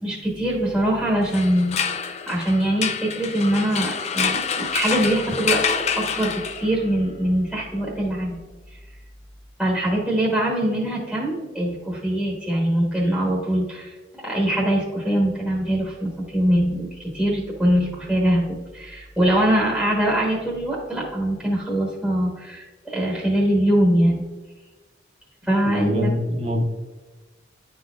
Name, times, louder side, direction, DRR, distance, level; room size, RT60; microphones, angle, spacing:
voice 1, 0.0-5.6 6.0-6.3 6.6-8.4 9.6-24.2 25.4-26.1, right 1 dB, ahead, -5 dB, 1.2 m, -23 dB
sound 1, 1.2-6.9, left 6 dB, 35° left, 0.3 m, -27 dB
voice 2, 25.6-26.6, equal, 35° right, 2 dB, 0.9 m, -24 dB
11.0 x 3.9 x 2.4 m, 1.2 s
head